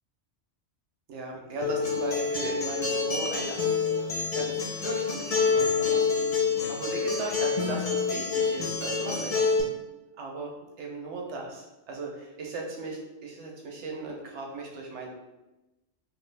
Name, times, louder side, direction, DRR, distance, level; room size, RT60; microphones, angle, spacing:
voice 1, 1.1-3.6 4.0-9.5 10.2-15.1, right 3 dB, 70° right, 0 dB, 0.9 m, -37 dB
Acoustic guitar, 1.6-9.6, left 5 dB, 50° left, 0.4 m, -27 dB
2.6 x 2.2 x 3.2 m, 1.0 s
omnidirectional pair, 1.3 m